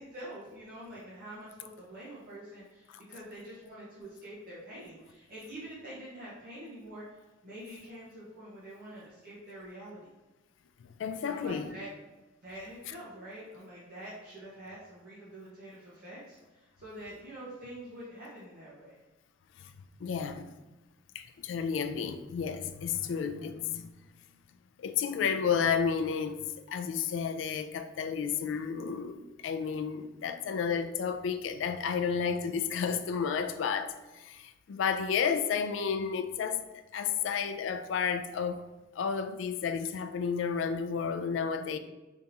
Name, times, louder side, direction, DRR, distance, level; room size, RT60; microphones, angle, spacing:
voice 1, 0.0-7.0 7.4-10.1 11.2-11.9 12.4-19.0, right 1 dB, 50° right, 0.9 m, -46 dB
voice 2, 10.8-11.7 19.6-19.7 20.0-20.5 21.1-23.9 24.8-36.6 36.9-38.6 39.0-41.8, left 6 dB, 75° left, 0.3 m, -32 dB
3.5 x 2.8 x 4.0 m
head